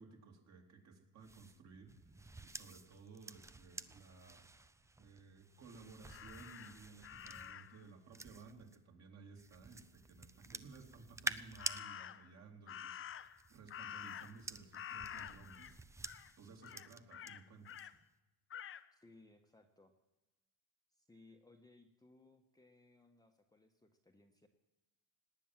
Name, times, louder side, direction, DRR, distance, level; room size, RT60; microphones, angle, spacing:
voice 1, 0.0-4.4 5.0-15.8 16.1-17.9, right 4 dB, 40° right, 2 dB, 3.1 m, -57 dB
sound 1, 1.2-8.8 9.4-11.8 13.1-17.3 17.7-18.0, right 2 dB, 10° right, 0.5 m, -49 dB
Crow, 6.1-7.8 11.6-12.3 12.7-14.5 14.7-15.7 16.0-16.3 16.6-17.9 18.5-18.8, left 9 dB, 30° left, 0.7 m, -49 dB
voice 2, 18.9-19.9 20.9-24.5, left 2 dB, 10° left, 3 dB, 1.2 m, -64 dB
18.5 x 9.2 x 7.5 m, 1.0 s
supercardioid pair, 105°, 40 cm